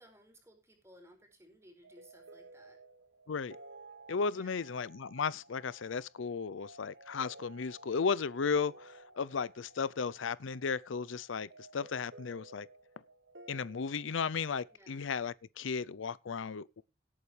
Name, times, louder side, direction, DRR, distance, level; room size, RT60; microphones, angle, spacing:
voice 1, 0.0-2.8 4.3-4.7 14.7-15.1, equal, 15° right, 4.9 m, -60 dB
sound 1, 1.8-14.8, right 2 dB, 70° right, 1.3 m, -55 dB
voice 2, 4.1-12.7 13.5-16.8, left 5 dB, 85° left, 0.5 m, -35 dB
18.0 x 8.7 x 3.3 m
head